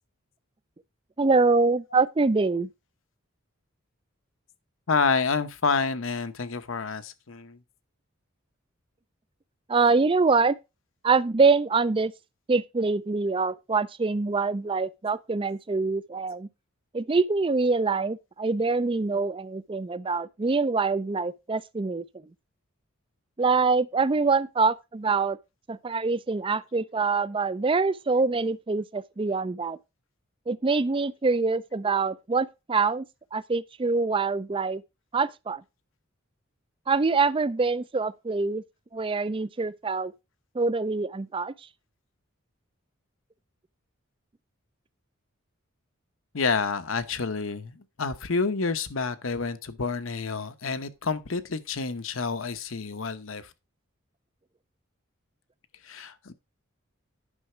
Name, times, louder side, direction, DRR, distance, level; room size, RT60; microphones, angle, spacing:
voice 1, 1.2-2.7 9.7-10.6 11.0-12.1 12.5-16.5 16.9-22.0 23.4-25.4 25.7-29.8 30.5-33.1 33.3-34.8 35.1-35.6 36.9-38.6 38.9-40.1 40.5-41.5, right 4 dB, 25° right, 0.4 m, -25 dB
voice 2, 4.9-7.6 46.3-53.5 55.8-56.3, left 4 dB, 75° left, 0.9 m, -29 dB
9.9 x 6.0 x 4.4 m
head